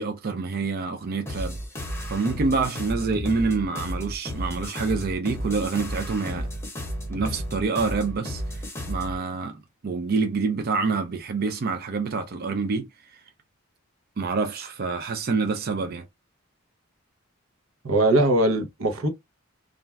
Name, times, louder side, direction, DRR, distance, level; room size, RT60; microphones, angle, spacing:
voice 1, 0.0-1.6 2.1-6.5 7.1-13.2 14.2-16.0, right 4 dB, 45° right, 0.4 m, -27 dB
sound 1, 1.3-9.2, equal, 15° left, 0.8 m, -33 dB
voice 2, 17.8-19.1, right 1 dB, 90° right, 0.8 m, -21 dB
2.4 x 2.2 x 3.2 m
head